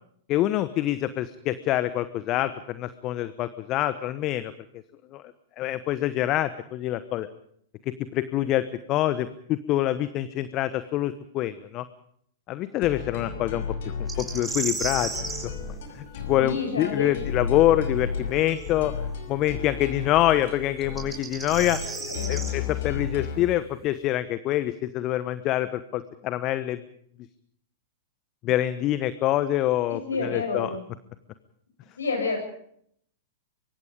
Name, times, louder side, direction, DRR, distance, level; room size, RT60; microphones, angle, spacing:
voice 1, 0.3-4.5 5.1-5.2 5.6-7.3 7.9-11.8 12.5-13.6 14.0-15.3 15.9-18.9 19.3-21.9 22.3-26.8 28.4-30.7, left 13 dB, 35° left, 14 dB, 1.0 m, -26 dB
sound 1, 12.8-23.5, left 6 dB, 60° left, 5.5 m, -33 dB
sound 2, 14.1-15.5 18.6-18.7 20.8-22.5, right 4 dB, 10° right, 5.7 m, -33 dB
voice 2, 16.4-17.2 21.9-22.5 29.9-30.8 32.0-32.4, left 4 dB, 75° left, 4 dB, 7.8 m, -29 dB
24.5 x 23.5 x 5.2 m, 0.67 s
figure-of-eight pair, 100°, 0 cm